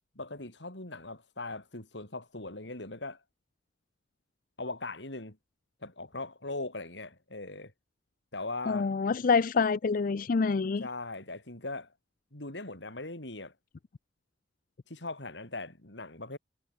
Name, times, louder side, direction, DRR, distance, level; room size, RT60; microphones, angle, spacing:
voice 1, 0.1-3.2 4.6-5.4 5.8-7.7 8.3-8.9 10.8-11.9 12.3-13.5 14.9-16.4, left 2 dB, 80° left, 4.7 m, -40 dB
voice 2, 8.7-10.9, left 5 dB, 50° left, 0.5 m, -26 dB
head